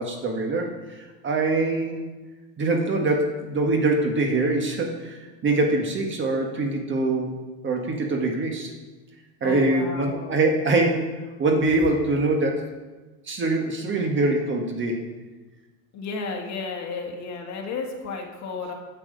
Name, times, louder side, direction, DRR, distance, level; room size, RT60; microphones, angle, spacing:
voice 1, 0.0-2.0 2.6-7.3 7.6-8.7 9.4-12.7 13.3-15.0, right 2 dB, 25° right, 2 dB, 1.5 m, -24 dB
voice 2, 9.4-10.4 15.9-18.7, left 4 dB, 40° left, 2 dB, 2.0 m, -33 dB
8.8 x 7.5 x 5.1 m, 1.2 s
hypercardioid pair, 110°, 44 cm